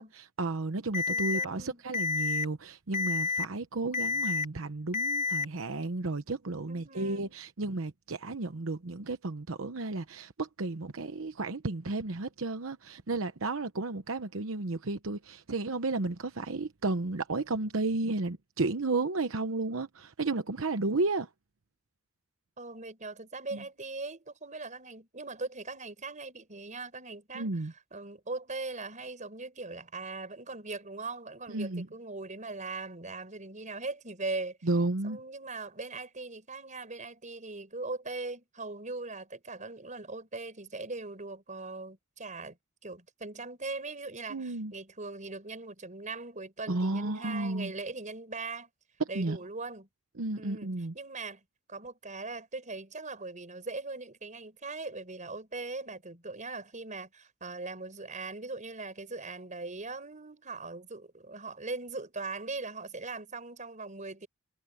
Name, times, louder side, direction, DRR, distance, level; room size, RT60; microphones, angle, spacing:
voice 1, 0.0-21.3 23.5-23.6 27.3-27.7 31.5-31.9 34.6-35.2 44.3-44.7 46.7-47.7 49.0-49.4 50.2-50.9, right 2 dB, 85° right, 0.9 m, -33 dB
Alarm, 0.9-1.4 1.9-2.4 2.9-3.4 3.9-4.4 4.9-5.4, left 5 dB, 40° left, 1.3 m, -29 dB
voice 2, 1.1-1.8 6.7-7.3 22.6-27.5 27.9-34.7 35.0-42.6 42.8-48.7 49.1-49.9 50.3-51.4 51.7-64.3, right 3 dB, 40° right, 5.7 m, -40 dB
head